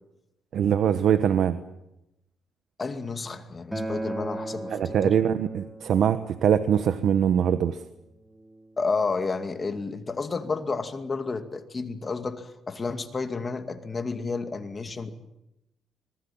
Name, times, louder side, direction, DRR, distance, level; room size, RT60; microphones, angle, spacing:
voice 1, 0.5-1.6 4.7-7.8, right 8 dB, 65° right, 11 dB, 1.2 m, -23 dB
voice 2, 2.8-5.2 8.8-15.1, left 4 dB, 25° left, 7 dB, 2.4 m, -31 dB
Acoustic guitar, 3.7-8.9, right 2 dB, 5° right, 3.7 m, -38 dB
25.5 x 20.5 x 8.9 m, 0.88 s
cardioid pair, 130°, 0 cm